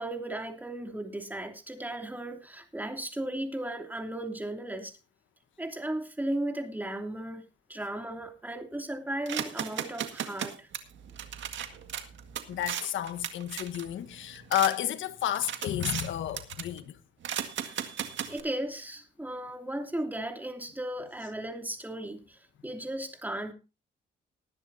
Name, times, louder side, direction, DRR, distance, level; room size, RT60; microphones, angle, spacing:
voice 1, 0.0-5.0 5.6-7.4 7.7-10.7 17.6-17.9 18.3-23.5, right 1 dB, 10° right, 2.8 m, -36 dB
sound 1, 9.3-14.7 15.1-16.1 16.4-16.8 17.2-18.4, right 9 dB, 70° right, 1.8 m, -37 dB
voice 2, 12.5-17.0, left 11 dB, 75° left, 1.4 m, -31 dB
20.0 x 10.5 x 2.7 m
cardioid pair, 90°, 20 cm